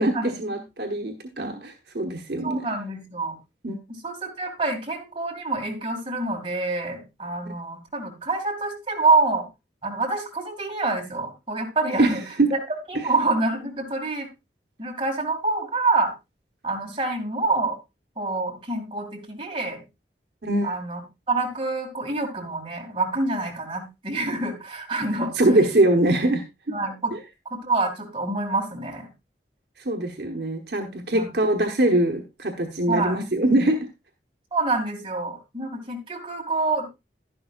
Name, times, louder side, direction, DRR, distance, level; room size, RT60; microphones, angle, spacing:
voice 1, 0.0-2.7 3.6-3.7 12.0-12.5 12.9-13.1 20.4-20.7 25.4-26.4 27.1-27.2 29.8-33.9, right 1 dB, 60° right, 3 dB, 1.0 m, -23 dB
voice 2, 2.4-3.4 3.9-9.4 9.8-12.2 12.5-12.6 12.9-14.3 14.8-16.1 16.6-17.8 18.2-19.8 20.6-21.0 21.3-25.3 26.7-27.1 27.5-29.1 31.1-31.3 32.9-33.2 34.5-36.9, right 3 dB, 30° right, 0 dB, 2.4 m, -26 dB
11.0 x 11.0 x 2.5 m, 0.23 s
head